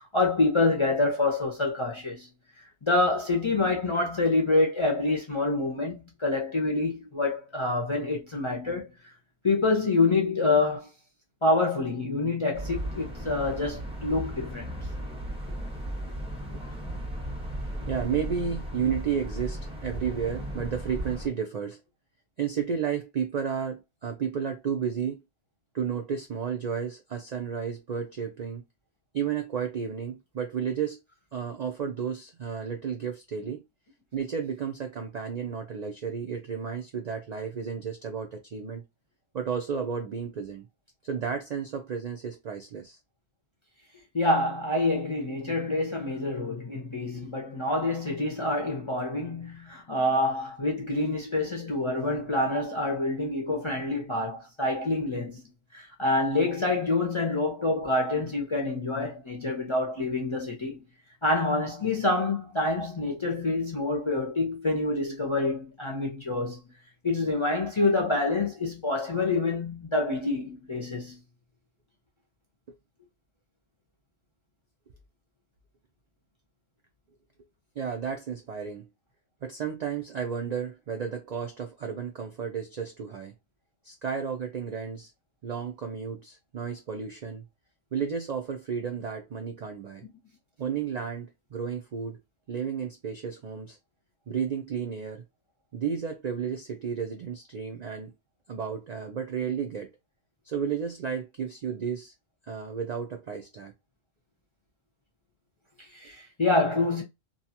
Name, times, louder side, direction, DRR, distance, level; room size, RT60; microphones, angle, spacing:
voice 1, 0.0-2.3 2.8-8.9 9.4-10.9 11.4-14.8 44.1-55.4 55.7-60.8 61.2-66.6 67.0-71.2 105.8-107.0, left 2 dB, 40° left, 0.4 m, -27 dB
sound 1, 12.5-21.3, equal, 5° right, 0.5 m, -36 dB
voice 2, 16.5-16.8 17.8-21.8 22.4-25.2 25.7-28.6 29.1-31.0 31.3-33.6 34.1-38.8 39.3-40.7 41.0-43.0 77.8-78.9 79.4-83.3 83.8-85.1 85.4-87.4 87.9-90.0 90.6-92.2 92.5-93.8 94.3-95.2 95.7-98.1 98.5-99.9 100.4-102.1 102.5-103.7, right 7 dB, 75° right, 0.3 m, -32 dB
2.6 x 2.3 x 2.7 m
omnidirectional pair, 1.3 m